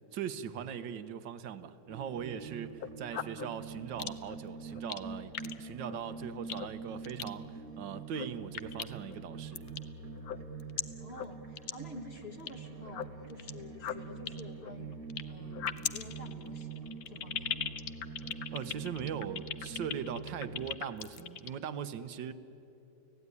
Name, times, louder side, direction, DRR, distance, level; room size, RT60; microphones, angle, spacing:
voice 1, 0.1-9.7 18.5-22.3, right 8 dB, 65° right, 12 dB, 1.5 m, -40 dB
sound 1, 1.9-20.7, right 4 dB, 45° right, 1.9 m, -45 dB
sound 2, 2.7-3.5 4.0-4.4 4.7-5.0 5.3-5.5 5.9-6.0 6.5-6.7 7.0-7.3 8.0-8.3 8.5-9.2 9.5-9.8 10.2-10.8 11.1-11.3 11.6-11.7 12.0-12.5 12.9-13.5 13.8-15.2 15.5-21.5, left 10 dB, 60° left, 1.0 m, -37 dB
voice 2, 11.0-15.0 15.3-18.0, left 1 dB, 30° left, 5 dB, 1.6 m, -49 dB
30.0 x 17.0 x 9.7 m, 3.0 s
omnidirectional pair, 2.3 m